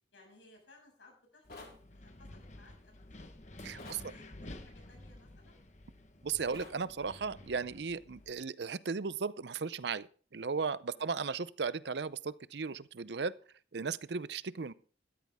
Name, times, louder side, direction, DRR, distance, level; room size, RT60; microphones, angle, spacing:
voice 1, 0.1-3.3 3.7-5.6 10.9-11.1, left 2 dB, 80° left, 6.7 m, -61 dB
Wind, 1.4-8.3, left 1 dB, 40° left, 1.3 m, -52 dB
sound 1, 1.5-1.8 3.8-4.1 6.5-6.8, left 2 dB, 55° left, 4.5 m, -49 dB
voice 2, 3.6-4.0 6.2-10.1 10.3-13.4 13.7-14.7, right 5 dB, 70° right, 0.6 m, -36 dB
13.5 x 13.5 x 3.6 m
head